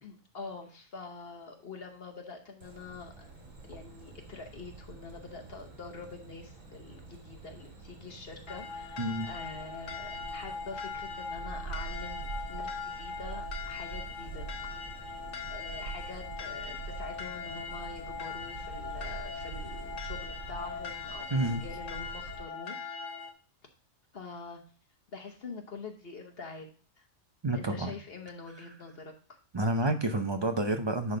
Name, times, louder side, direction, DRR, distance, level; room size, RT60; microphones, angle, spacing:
voice 1, 0.0-3.3 3.7-15.2 15.5-22.8 24.1-24.6 25.1-26.7 27.0-27.1 27.5-29.4, left 4 dB, 50° left, 3 dB, 1.2 m, -45 dB
sound 1, 2.6-22.4, right 4 dB, 75° right, 2.1 m, -45 dB
sound 2, 8.5-23.3, left 5 dB, 65° left, 1.2 m, -40 dB
voice 2, 9.0-9.3 21.3-21.6 27.4-27.9 29.5-31.2, right 1 dB, 35° right, 6 dB, 0.4 m, -29 dB
10.5 x 3.6 x 3.8 m, 0.40 s
omnidirectional pair, 1.3 m